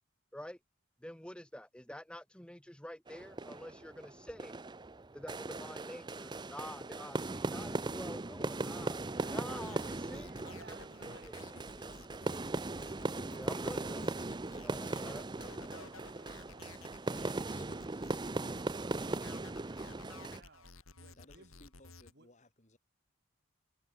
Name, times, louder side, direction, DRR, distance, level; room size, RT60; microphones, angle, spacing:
voice 1, 1.0-4.6 5.1-9.0 9.3-10.4 11.1-11.9 12.7-12.9 13.2-14.1 14.6-15.2, left 1 dB, 5° left, 0.9 m, -48 dB
sound 1, 3.1-20.4, right 2 dB, 20° right, 0.6 m, -39 dB
voice 2, 9.0-12.8 20.3-21.6 22.1-22.3, right 3 dB, 50° right, 4.1 m, -60 dB
sound 2, 9.6-22.1, left 3 dB, 85° left, 4.0 m, -54 dB
voice 3, 21.2-22.8, left 1 dB, 35° left, 3.5 m, -62 dB
head